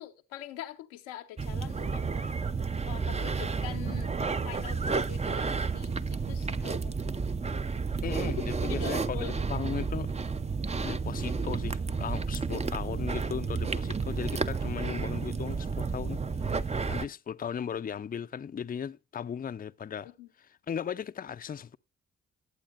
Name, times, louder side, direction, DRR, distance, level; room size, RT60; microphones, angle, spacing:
voice 1, 0.0-2.1 2.8-4.1 4.4-6.9 8.7-9.4 20.0-20.3, left 12 dB, 85° left, 0.8 m, -43 dB
sound 1, 1.4-17.1, right 4 dB, 20° right, 0.6 m, -31 dB
voice 2, 8.0-10.1 10.8-20.1 20.4-21.8, left 7 dB, 30° left, 0.5 m, -37 dB
20.0 x 8.4 x 2.5 m
hypercardioid pair, 40°, 31 cm